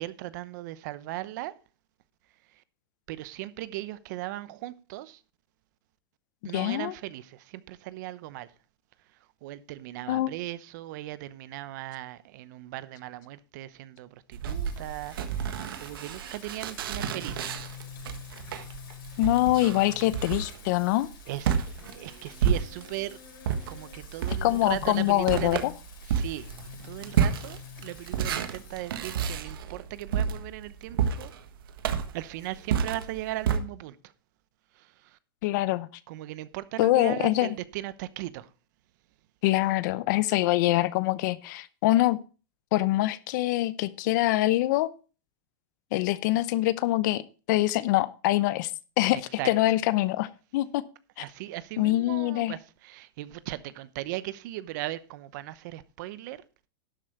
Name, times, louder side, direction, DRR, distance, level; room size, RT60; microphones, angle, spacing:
voice 1, 0.0-1.5 2.5-2.6 3.1-5.2 6.4-8.5 9.4-17.5 21.3-21.6 21.9-23.2 23.7-25.6 26.1-26.5 26.8-31.3 32.1-34.1 34.7-35.2 36.1-38.5 49.4-49.5 51.2-56.4, right 16 dB, 55° right, 0.9 m, -38 dB
voice 2, 6.5-6.9 10.1-10.3 19.2-21.1 24.3-25.7 35.4-35.9 36.8-37.5 39.4-42.2 42.7-44.9 45.9-47.2 47.5-48.7 49.0-49.2 49.4-50.8 51.2-51.3 51.8-52.5, left 17 dB, 55° left, 0.7 m, -24 dB
sound 1, 14.3-23.1 23.4-33.6, right 8 dB, 80° right, 1.5 m, -30 dB
Singing, 14.5-32.1, left 8 dB, 80° left, 5.2 m, -47 dB
12.0 x 7.7 x 4.5 m
supercardioid pair, 150°, 12 cm